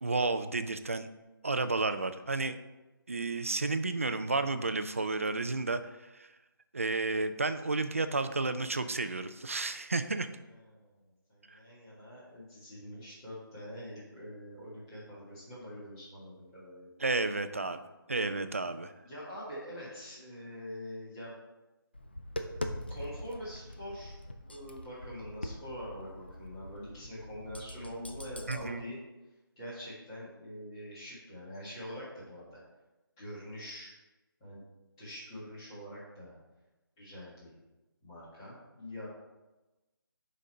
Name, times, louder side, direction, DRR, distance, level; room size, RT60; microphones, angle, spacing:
voice 1, 0.0-1.1 1.4-2.6 3.1-6.3 6.7-10.3 11.5-11.6 17.0-17.8 18.1-18.9 28.5-28.8, right 3 dB, 35° right, 10 dB, 0.4 m, -32 dB
voice 2, 11.3-16.9 19.0-21.4 22.9-24.2 24.5-29.0 29.6-32.6 33.2-33.9 34.4-34.6 35.0-36.3 37.0-37.5 38.0-39.1, equal, 10° left, -9 dB, 1.7 m, -44 dB
Tap, 21.9-28.6, left 1 dB, 25° left, 0.4 m, -43 dB
6.2 x 5.3 x 5.5 m, 1.1 s
hypercardioid pair, 180°, 12 cm